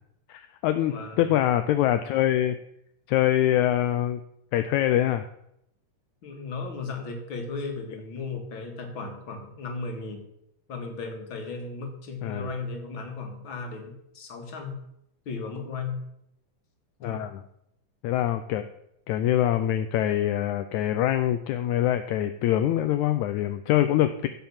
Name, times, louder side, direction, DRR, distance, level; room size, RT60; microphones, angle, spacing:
voice 1, 0.3-2.6 3.1-4.2 4.5-5.3 12.2-12.5 17.0-17.4 18.0-18.7 19.1-24.3, left 12 dB, 80° left, 9 dB, 1.8 m, -24 dB
voice 2, 0.9-1.4 6.2-10.2 10.7-14.8 15.3-16.0 17.0-17.3, left 4 dB, 40° left, 3 dB, 2.4 m, -35 dB
15.5 x 5.8 x 7.3 m, 0.79 s
omnidirectional pair, 3.8 m